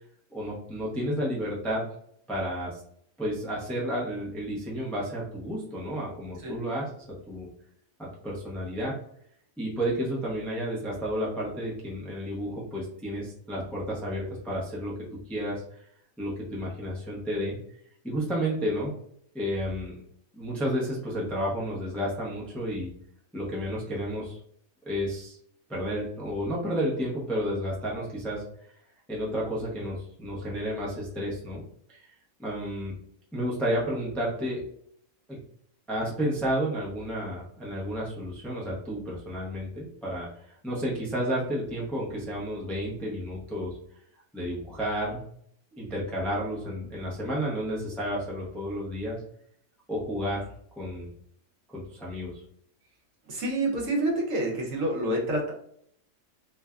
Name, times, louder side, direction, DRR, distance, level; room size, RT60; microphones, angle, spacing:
voice 1, 0.3-1.8 2.3-2.8 3.2-7.5 8.0-8.9 9.6-14.9 15.3-15.8 16.2-17.6 18.0-18.9 19.3-19.9 20.3-22.9 23.3-24.4 24.8-25.4 25.7-28.4 29.1-31.6 31.9-32.1 32.4-32.9 33.3-34.6 35.3-35.4 35.9-40.3 40.6-43.7 44.3-45.2 45.8-49.2 49.9-50.4 50.8-51.1 51.7-52.4, equal, ahead, -5 dB, 0.5 m, -31 dB
voice 2, 53.3-55.5, right 1 dB, 70° right, -1 dB, 1.2 m, -28 dB
3.2 x 2.2 x 2.3 m, 0.66 s
omnidirectional pair, 1.5 m